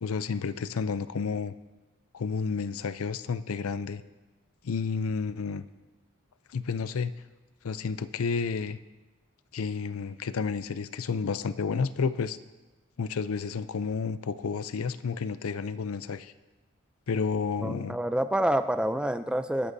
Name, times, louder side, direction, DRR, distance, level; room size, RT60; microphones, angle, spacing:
voice 1, 0.0-1.5 2.1-4.0 4.6-5.7 6.5-7.1 7.6-8.8 9.5-12.4 13.0-16.3 17.1-18.0, left 5 dB, 90° left, 13 dB, 0.5 m, -31 dB
voice 2, 17.6-19.7, right 1 dB, 5° right, 10 dB, 0.3 m, -27 dB
21.0 x 11.0 x 2.7 m, 1.2 s
head